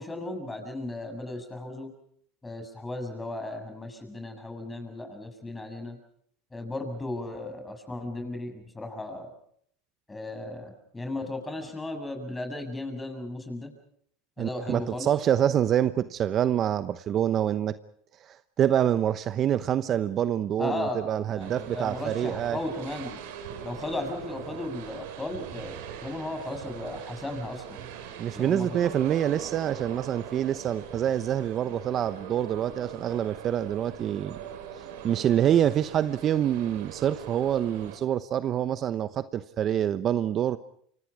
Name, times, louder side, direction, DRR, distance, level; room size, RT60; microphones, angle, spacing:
voice 1, 0.0-1.9 2.4-6.0 6.5-9.3 10.1-13.7 14.4-15.1 20.6-23.2 23.6-27.9 28.3-29.2, left 2 dB, 10° left, 6 dB, 7.2 m, -36 dB
voice 2, 14.4-17.8 18.2-22.6 28.2-34.4 34.8-40.6, right 10 dB, 40° right, 13 dB, 0.9 m, -26 dB
sound 1, 21.4-38.0, right 8 dB, 75° right, 5.1 m, -41 dB
29.5 x 25.5 x 4.9 m, 0.65 s
supercardioid pair, 110°, 0 cm